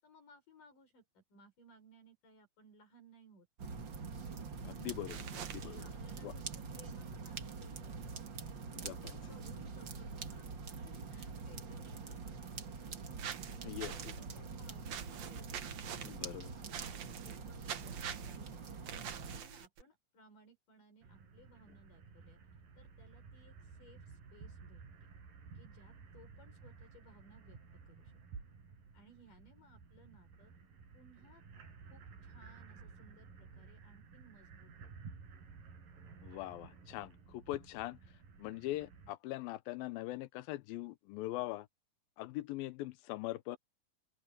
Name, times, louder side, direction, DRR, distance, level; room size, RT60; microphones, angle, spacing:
voice 1, 0.0-3.5 5.6-8.3 8.7-12.9 13.3-18.8 19.3-22.4 22.8-25.1 25.6-27.6 27.9-28.1 28.9-30.5 30.9-31.4 31.9-35.1, equal, 65° left, 7.7 m, -62 dB
sound 1, 3.6-19.4, right 5 dB, 40° right, 1.9 m, -45 dB
voice 2, 4.6-5.8 6.2-6.3 8.7-9.1 13.6-14.1 16.0-16.5 36.2-38.0 38.4-41.7 42.2-43.6, left 16 dB, 90° left, 2.6 m, -42 dB
sound 2, 5.1-5.6 13.2-14.2 14.9-16.2 16.7-17.4 17.6-18.4 18.9-19.8, right 9 dB, 60° right, 2.4 m, -44 dB
sound 3, 21.0-39.1, right 5 dB, 75° right, 6.8 m, -54 dB
open air
omnidirectional pair, 4.0 m